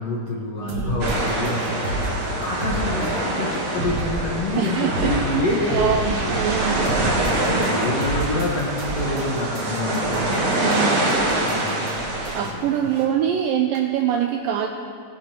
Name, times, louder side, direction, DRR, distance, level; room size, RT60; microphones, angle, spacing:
voice 1, 0.0-1.9 2.1-6.4 6.6-10.1 11.4-11.8 12.4-12.6, left 2 dB, 60° left, -4 dB, 1.7 m, -27 dB
voice 2, 0.6-1.1 4.6-5.1 5.7-7.0 10.6-11.3 12.3-14.7, right 8 dB, 85° right, 4 dB, 2.0 m, -24 dB
sound 1, 0.7-13.0, right 2 dB, 35° right, 2.5 m, -31 dB
sound 2, 1.0-12.5, right 1 dB, 65° right, 3.4 m, -25 dB
20.0 x 11.5 x 3.0 m, 2.3 s
omnidirectional pair, 4.6 m